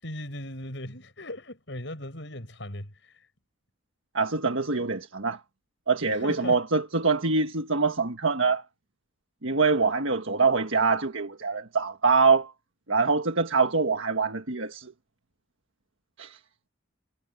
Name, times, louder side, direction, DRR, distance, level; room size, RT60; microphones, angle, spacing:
voice 1, 0.0-2.9 4.8-4.9 6.1-6.6, left 1 dB, 65° left, 6.9 m, -38 dB
voice 2, 4.1-5.4 5.9-8.6 9.4-12.5 12.9-14.9 16.2-16.4, right 4 dB, 80° right, 1.5 m, -24 dB
head